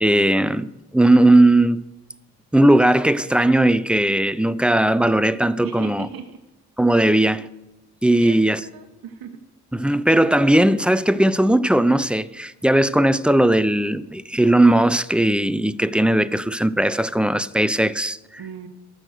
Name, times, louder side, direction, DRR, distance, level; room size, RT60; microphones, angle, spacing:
voice 1, 0.0-1.8 2.5-6.1 6.8-7.5 8.0-8.6 9.7-18.2, right 1 dB, 5° right, 0.4 m, -18 dB
voice 2, 5.6-6.4 8.2-9.4 18.4-18.7, right 7 dB, 60° right, 1.0 m, -37 dB
7.9 x 6.2 x 7.8 m
hypercardioid pair, 45°, 40 cm